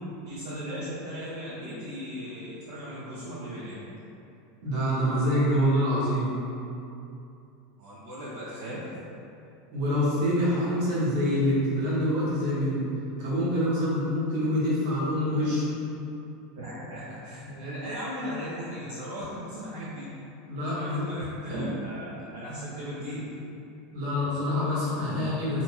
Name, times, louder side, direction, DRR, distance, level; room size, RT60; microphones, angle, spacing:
voice 1, 0.2-3.8 7.8-8.9 16.5-20.1 20.6-23.3, equal, 85° right, -10 dB, 0.6 m, -37 dB
voice 2, 4.6-6.3 9.7-12.8 13.2-15.6 17.4-17.7 20.5-21.0 21.5-21.7 23.9-25.6, equal, 65° right, -8 dB, 1.0 m, -26 dB
2.6 x 2.2 x 3.0 m, 2.7 s
supercardioid pair, 145°, 0 cm